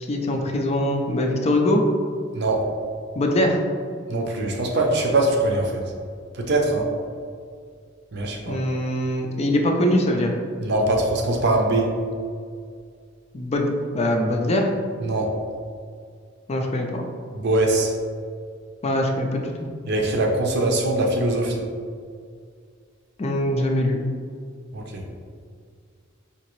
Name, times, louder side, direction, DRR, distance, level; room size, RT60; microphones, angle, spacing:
voice 1, 0.1-1.8 3.2-3.6 8.5-10.3 13.3-14.7 16.5-17.0 18.8-19.7 23.2-24.0, left 1 dB, 30° left, 2 dB, 0.4 m, -22 dB
voice 2, 2.3-2.7 4.1-5.8 6.3-6.9 8.1-8.6 10.6-11.9 15.0-15.3 17.3-17.9 19.9-21.6 24.7-25.0, right 2 dB, 55° right, 1 dB, 0.6 m, -22 dB
4.9 x 2.8 x 3.0 m, 2.2 s
head